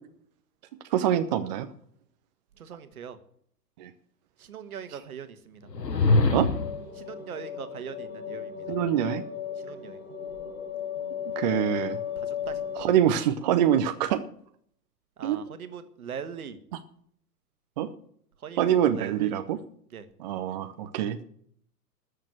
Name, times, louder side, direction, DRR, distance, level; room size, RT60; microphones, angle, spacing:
voice 1, 0.9-1.7 3.8-3.9 6.3-6.5 8.7-9.2 11.4-12.0 12.8-14.2 15.2-15.4 17.8-17.9 18.6-19.6 20.2-21.2, right 10 dB, 30° right, 8 dB, 0.6 m, -25 dB
voice 2, 2.6-3.2 4.4-5.7 6.9-8.8 9.6-10.0 12.2-12.7 15.2-16.6 18.4-19.3 19.9-20.1, right 7 dB, 60° right, 10 dB, 1.6 m, -41 dB
sound 1, 5.7-6.9, left 3 dB, 80° left, 1.2 m, -23 dB
sound 2, 6.5-12.9, left 8 dB, 55° left, 3.8 m, -35 dB
13.5 x 6.6 x 9.0 m, 0.65 s
figure-of-eight pair, 110°, 49 cm